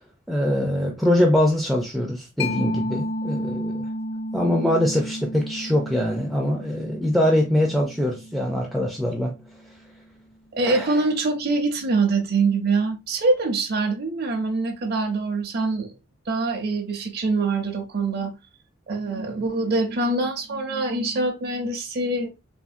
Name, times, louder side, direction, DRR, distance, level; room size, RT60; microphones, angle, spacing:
voice 1, 0.3-3.9 4.3-9.3 10.6-11.0, left 1 dB, ahead, 0.3 m, -23 dB
Mallet percussion, 2.4-9.7, left 1 dB, 65° left, 0.5 m, -33 dB
voice 2, 10.5-15.9 16.3-18.3 18.9-22.3, right 3 dB, 50° right, 0.5 m, -24 dB
3.4 x 2.6 x 2.2 m
head